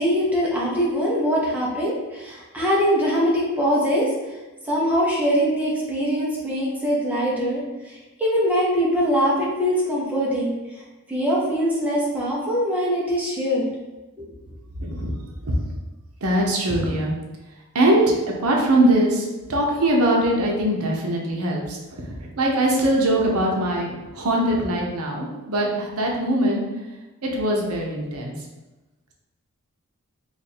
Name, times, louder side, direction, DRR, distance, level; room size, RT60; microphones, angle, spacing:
voice 1, 0.0-4.1 4.7-10.5 11.1-13.6 14.2-14.3, equal, 5° right, -6 dB, 0.8 m, -22 dB
voice 2, 14.8-15.1 15.4-15.5 16.2-17.1 17.7-18.1 18.4-26.6 27.2-28.3, right 1 dB, 75° right, -1 dB, 0.7 m, -22 dB
3.1 x 2.5 x 4.2 m, 1.1 s
head